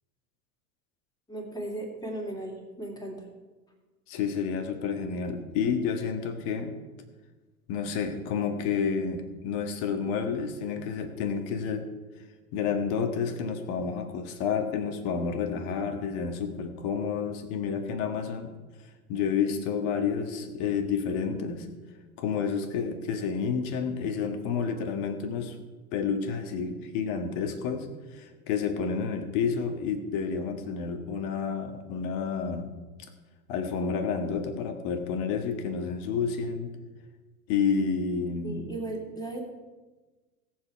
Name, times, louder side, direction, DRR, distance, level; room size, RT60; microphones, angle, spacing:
voice 1, 1.3-3.3 38.4-39.4, right 2 dB, 10° left, 1 dB, 2.6 m, -36 dB
voice 2, 4.1-6.7 7.7-11.9 12.5-18.5 19.1-21.7 22.2-25.5 25.9-27.9 28.1-32.7 33.5-36.8 37.5-38.6, left 6 dB, 50° left, 7 dB, 1.7 m, -30 dB
17.5 x 7.7 x 4.7 m, 1.2 s
figure-of-eight pair, 85°, 44 cm